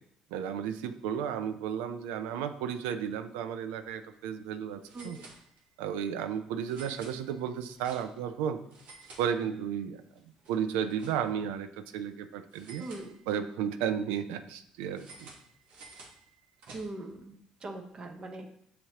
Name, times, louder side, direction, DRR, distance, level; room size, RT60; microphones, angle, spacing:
voice 1, 0.3-5.2 5.8-8.6 9.2-10.0 10.5-12.8 13.3-15.3, right 8 dB, 85° right, 9 dB, 0.3 m, -33 dB
sound 1, 4.2-4.3 4.8-5.9 6.6-8.3 8.6-9.8 10.2-11.5 12.5-13.6 14.9-17.2, right 3 dB, 65° right, 1.0 m, -53 dB
voice 2, 12.8-13.1 16.7-17.3 17.6-18.5, right 2 dB, 40° right, 4 dB, 0.7 m, -40 dB
6.4 x 2.8 x 2.8 m, 0.70 s
supercardioid pair, 65°, 2 cm